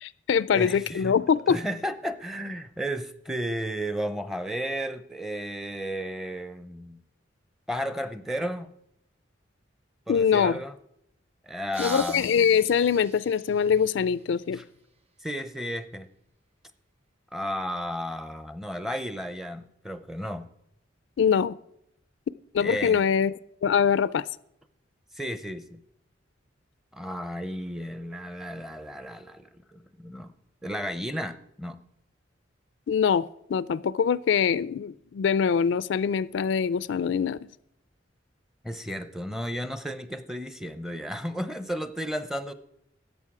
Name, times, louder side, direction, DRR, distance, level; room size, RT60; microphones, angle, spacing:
voice 1, 0.0-1.6 10.1-10.5 11.8-14.6 21.2-21.6 22.5-23.3 23.6-24.2 32.9-37.4, left 7 dB, 70° left, 18 dB, 0.4 m, -23 dB
voice 2, 0.5-1.2 1.5-7.0 7.7-8.7 10.1-10.8 11.4-12.2 14.5-14.6 15.2-16.1 17.3-20.5 22.6-23.1 25.1-25.8 26.9-30.3 30.6-31.8 38.6-42.5, equal, ahead, 11 dB, 0.6 m, -33 dB
sound 1, 11.7-15.2, right 4 dB, 35° right, 0.9 m, -44 dB
13.0 x 8.3 x 4.8 m, 0.76 s
head